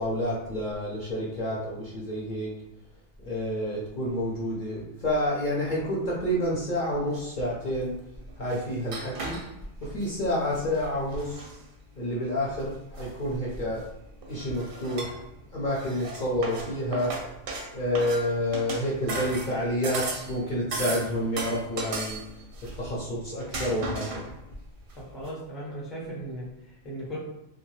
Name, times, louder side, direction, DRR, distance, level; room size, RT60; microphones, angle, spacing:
voice 1, 0.0-2.5 3.2-7.9 8.4-9.4 9.8-11.4 12.0-13.8 14.3-15.2 15.5-17.1 17.7-22.2 22.8-24.3, equal, 50° left, -5 dB, 0.6 m, -29 dB
sound 1, 7.2-7.3 8.3-10.2 10.5-11.6 12.6-13.9 14.2-15.4 15.7-20.4 20.7-23.0 23.4-24.4 24.9-25.0 25.2-25.3, right 3 dB, 60° right, 0.6 m, -36 dB
voice 2, 24.9-27.2, right 1 dB, ahead, -5 dB, 0.5 m, -37 dB
2.6 x 2.2 x 3.0 m, 0.87 s
omnidirectional pair, 1.2 m